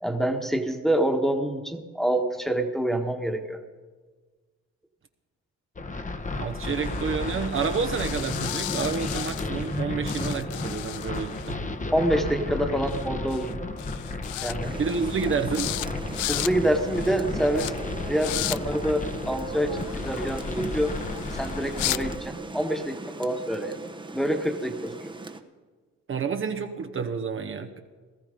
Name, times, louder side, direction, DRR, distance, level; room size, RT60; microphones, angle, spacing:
voice 1, 0.0-3.6 11.9-13.6 14.4-14.8 16.3-17.7 18.1-21.0 21.3-23.8 24.1-25.1, right 1 dB, ahead, 3 dB, 1.5 m, -26 dB
sound 1, 5.8-22.2, left 2 dB, 25° left, 1.1 m, -33 dB
voice 2, 6.4-11.6 14.8-15.7 26.1-27.8, right 5 dB, 45° right, 6 dB, 1.0 m, -29 dB
sound 2, 6.7-9.8 10.1-11.5 12.9-13.0 13.3-13.5 13.8-14.6 14.9-15.2 15.5-16.5 16.9-17.2 17.6-17.7 18.2-18.6 19.8-22.0, left 16 dB, 80° left, 0.5 m, -35 dB
Rain, 14.6-25.4, right 2 dB, 15° right, 1.0 m, -39 dB
18.0 x 13.5 x 5.2 m, 1.4 s
cardioid pair, 90°, 30 cm